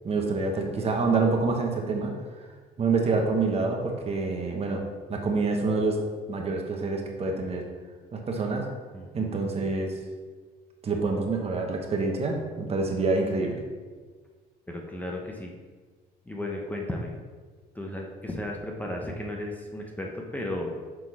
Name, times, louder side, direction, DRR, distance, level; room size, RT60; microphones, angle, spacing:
voice 1, 0.0-2.1 2.8-4.8 5.1-6.0 6.3-7.7 8.1-8.6 9.1-9.9 10.8-13.6, right 3 dB, 35° right, 2 dB, 1.0 m, -27 dB
voice 2, 8.9-9.4 14.7-15.5 16.3-17.1 17.7-20.7, left 1 dB, 10° left, 0 dB, 0.8 m, -34 dB
6.2 x 3.6 x 4.8 m, 1.4 s
cardioid pair, 110°, 17 cm